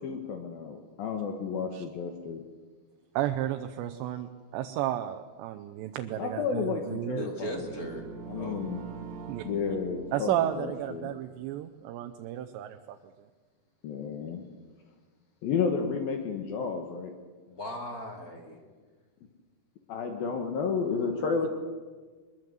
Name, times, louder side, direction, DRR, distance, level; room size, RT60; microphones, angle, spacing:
voice 1, 0.0-2.4 6.2-7.9 8.3-8.8 9.4-11.1 13.8-14.4 15.4-17.1 19.9-21.5, left 5 dB, 65° left, 4 dB, 3.0 m, -32 dB
voice 2, 3.1-7.2 9.3-9.7 10.1-13.3, right 12 dB, 85° right, 6 dB, 3.0 m, -33 dB
voice 3, 7.2-8.7 17.5-18.6, equal, 30° left, 3 dB, 1.9 m, -38 dB
sound 1, 7.5-11.5, right 6 dB, 65° right, 2.8 m, -44 dB
23.0 x 21.0 x 8.0 m, 1.4 s
omnidirectional pair, 5.0 m